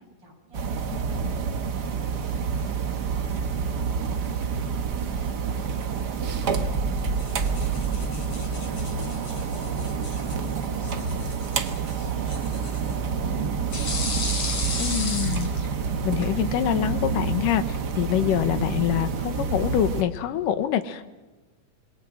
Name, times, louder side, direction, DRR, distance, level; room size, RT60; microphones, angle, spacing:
voice 1, 0.0-6.9 7.3-14.6, right 1 dB, 30° right, 0 dB, 8.6 m, -49 dB
sound 1, 0.5-20.0, right 5 dB, 60° right, 1.0 m, -28 dB
sound 2, 7.1-16.3, left 3 dB, 50° left, 5.5 m, -36 dB
voice 2, 14.8-15.5 16.0-21.1, left 11 dB, 90° left, 10 dB, 2.8 m, -25 dB
27.5 x 22.0 x 6.2 m, 1.2 s
omnidirectional pair, 3.8 m